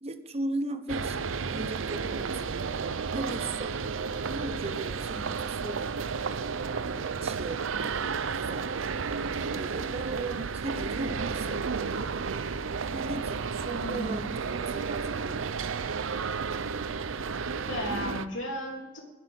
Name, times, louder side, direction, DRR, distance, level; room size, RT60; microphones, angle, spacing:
voice 1, 0.0-2.5 3.1-3.8 4.3-5.8 7.2-7.9 8.2-8.8 9.6-12.2 12.9-15.5, right 2 dB, 30° right, 9 dB, 0.9 m, -37 dB
sound 1, 0.9-18.3, right 5 dB, 90° right, 0.6 m, -32 dB
voice 2, 13.8-14.3 17.7-19.0, left 1 dB, 75° left, 0 dB, 3.2 m, -34 dB
11.0 x 7.9 x 9.6 m, 1.1 s
head